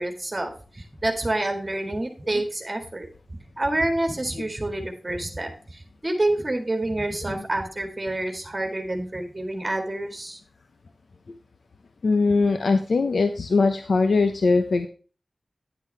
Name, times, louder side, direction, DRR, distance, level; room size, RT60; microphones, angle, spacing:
voice 1, 0.0-3.1 3.6-10.4, right 1 dB, 30° right, 4 dB, 1.8 m, -28 dB
voice 2, 12.0-14.9, left 3 dB, 85° left, 8 dB, 0.7 m, -21 dB
10.0 x 8.3 x 3.3 m, 0.38 s
wide cardioid pair, 70°, 0 cm